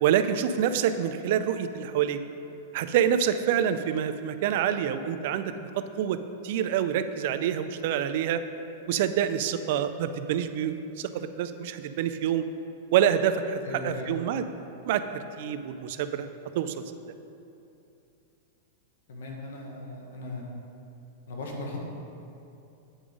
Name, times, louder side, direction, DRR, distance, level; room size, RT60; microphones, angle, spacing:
voice 1, 0.0-2.2 2.7-8.4 8.9-12.4 12.9-14.4 14.9-16.3 16.5-16.8, right 9 dB, 60° right, 11 dB, 0.4 m, -27 dB
voice 2, 13.6-14.1 15.9-16.1 19.1-20.4 21.3-21.8, left 2 dB, 80° left, 0 dB, 1.5 m, -38 dB
8.8 x 4.9 x 5.2 m, 2.8 s
hypercardioid pair, 135°, 0 cm